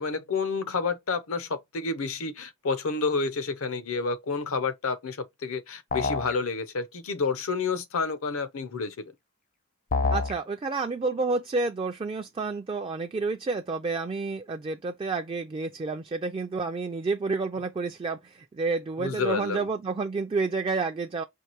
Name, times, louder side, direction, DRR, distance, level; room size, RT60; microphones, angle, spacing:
voice 1, 0.0-9.0 19.0-19.7, left 4 dB, 85° left, 0.7 m, -29 dB
sound 1, 5.9-6.4 9.9-10.4, left 3 dB, 40° left, 0.5 m, -26 dB
voice 2, 10.1-21.2, right 3 dB, 25° right, 0.3 m, -30 dB
4.6 x 2.6 x 2.9 m
head